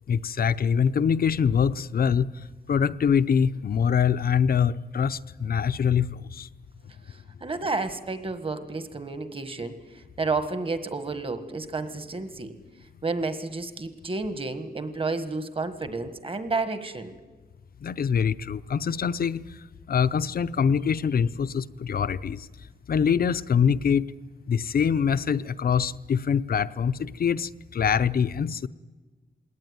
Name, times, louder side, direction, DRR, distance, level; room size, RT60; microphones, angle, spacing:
voice 1, 0.1-2.3 2.7-6.5 17.8-19.4 19.9-22.5 22.9-24.1 24.5-28.7, left 7 dB, 60° left, 14 dB, 0.6 m, -24 dB
voice 2, 7.1-12.5 13.0-17.1, right 3 dB, 30° right, 10 dB, 1.5 m, -31 dB
21.0 x 18.0 x 9.6 m, 1.3 s
wide cardioid pair, 145°, 17 cm